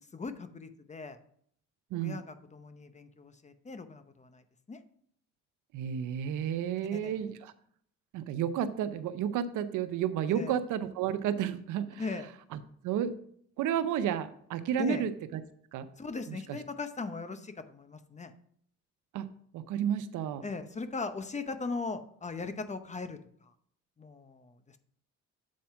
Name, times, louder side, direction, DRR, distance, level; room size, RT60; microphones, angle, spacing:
voice 1, 0.1-1.2 1.9-4.8 6.9-7.3 10.3-10.6 12.0-12.3 14.8-15.1 16.0-18.3 20.4-23.5 24.0-24.8, left 4 dB, 25° left, 10 dB, 0.7 m, -39 dB
voice 2, 5.7-7.5 8.1-12.0 12.5-13.2 13.6-15.4 15.7-15.9 16.5-16.6 19.1-19.3 19.5-20.4, right 9 dB, 85° right, 12 dB, 0.7 m, -32 dB
7.5 x 4.3 x 5.7 m, 0.65 s
cardioid pair, 90°, 30 cm